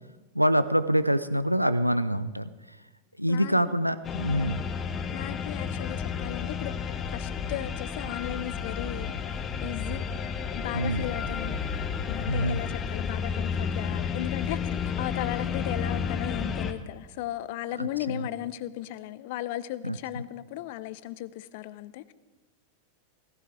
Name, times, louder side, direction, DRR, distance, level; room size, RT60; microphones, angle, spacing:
voice 1, 0.3-2.5 3.2-4.6 10.7-11.1 12.3-12.6 17.8-18.3 19.8-20.2, equal, 90° right, 14 dB, 0.6 m, -26 dB
sound 1, 4.0-16.7, left 6 dB, 25° left, 1.1 m, -32 dB
voice 2, 5.1-10.0 10.5-11.7 12.1-22.1, left 14 dB, 50° left, 17 dB, 0.6 m, -36 dB
sound 2, 10.9-14.3 14.6-14.7, right 6 dB, 35° right, 3.2 m, -49 dB
17.0 x 15.5 x 4.8 m, 1.2 s
figure-of-eight pair, 90°, 0 cm